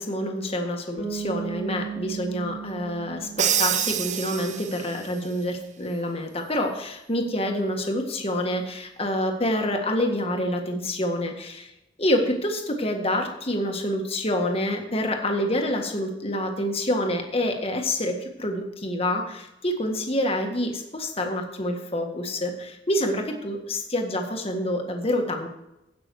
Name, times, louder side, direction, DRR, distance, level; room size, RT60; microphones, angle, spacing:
voice 1, 0.0-11.7 12.0-25.5, left 1 dB, 30° left, 3 dB, 1.7 m, -27 dB
Bass guitar, 1.0-4.7, right 7 dB, 85° left, 2.9 m, -36 dB
Crash cymbal, 3.4-5.1, right 10 dB, 40° right, 0.5 m, -26 dB
16.0 x 6.2 x 4.7 m, 0.88 s
head